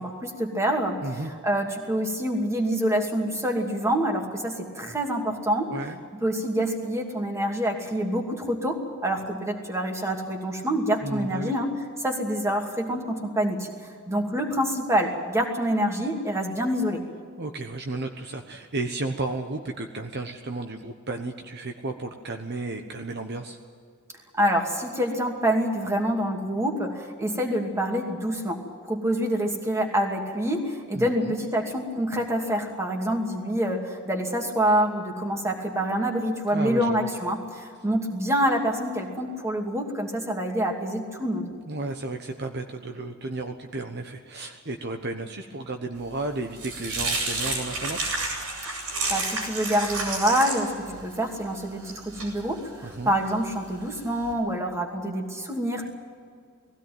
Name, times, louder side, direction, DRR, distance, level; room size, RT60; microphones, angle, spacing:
voice 1, 0.0-1.0 1.4-5.7 6.2-11.7 12.0-13.7 14.1-17.0 24.3-41.5 48.7-55.8, equal, 15° right, 2 dB, 2.5 m, -26 dB
voice 2, 5.7-6.0 11.0-11.5 17.4-23.6 30.9-31.4 36.5-37.1 41.7-48.0 52.8-53.2, right 2 dB, 50° right, 5 dB, 1.1 m, -33 dB
sound 1, 46.1-54.3, right 3 dB, 75° right, 7.2 m, -32 dB
20.0 x 16.5 x 9.3 m, 2.1 s
head